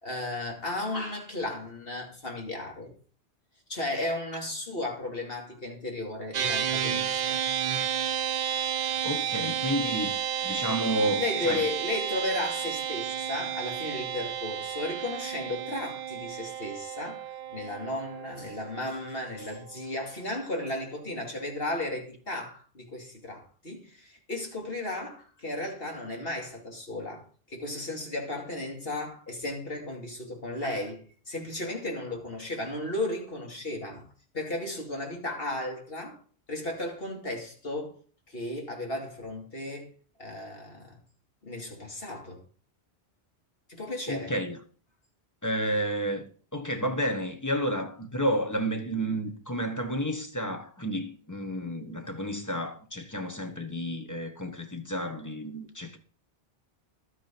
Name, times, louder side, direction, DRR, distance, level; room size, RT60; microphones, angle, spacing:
voice 1, 0.0-2.9 3.7-7.4 11.2-27.2 27.5-34.0 34.3-36.2 36.5-37.9 38.3-39.9 40.2-41.0 41.4-42.4 43.7-44.3, left 2 dB, 65° left, 2.9 m, -34 dB
sound 1, 6.3-19.9, right 9 dB, 50° right, 0.6 m, -32 dB
voice 2, 8.8-10.1 10.4-11.6 44.1-44.6 45.4-56.0, equal, 15° left, 1.3 m, -31 dB
11.5 x 8.9 x 4.5 m
omnidirectional pair, 1.1 m